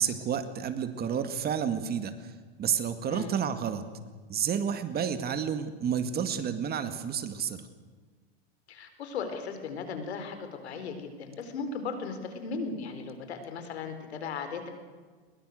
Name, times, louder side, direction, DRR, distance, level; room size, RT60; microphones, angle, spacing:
voice 1, 0.0-2.3 2.6-3.8 4.3-7.6, right 8 dB, 30° right, 9 dB, 2.1 m, -30 dB
voice 2, 8.7-14.7, left 5 dB, 90° left, 8 dB, 4.3 m, -37 dB
22.0 x 21.5 x 6.6 m, 1.4 s
supercardioid pair, 120°, 31 cm